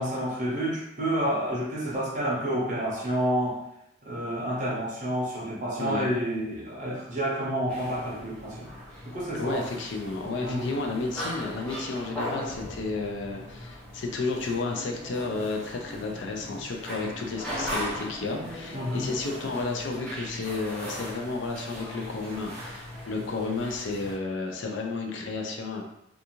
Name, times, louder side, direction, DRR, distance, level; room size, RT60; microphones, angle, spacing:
voice 1, 0.0-3.6 4.0-8.7 9.0-9.6 10.4-10.8 18.7-19.1, right 1 dB, 40° right, -5 dB, 0.6 m, -29 dB
voice 2, 5.8-6.1 9.4-25.8, left 3 dB, 65° left, 2 dB, 0.4 m, -32 dB
sound 1, 7.7-24.1, equal, 5° left, 0.6 m, -39 dB
2.5 x 2.4 x 2.9 m, 0.82 s
head